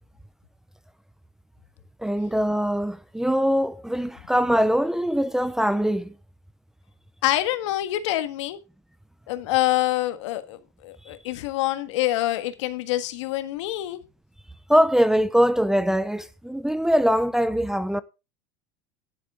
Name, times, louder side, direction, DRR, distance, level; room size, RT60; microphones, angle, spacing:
voice 1, 2.0-6.1 14.7-18.0, equal, 5° right, 0.5 m, -22 dB
voice 2, 7.2-8.6 9.3-14.0, left 15 dB, 85° left, 1.6 m, -26 dB
11.0 x 11.0 x 3.7 m
supercardioid pair, 135°, 15 cm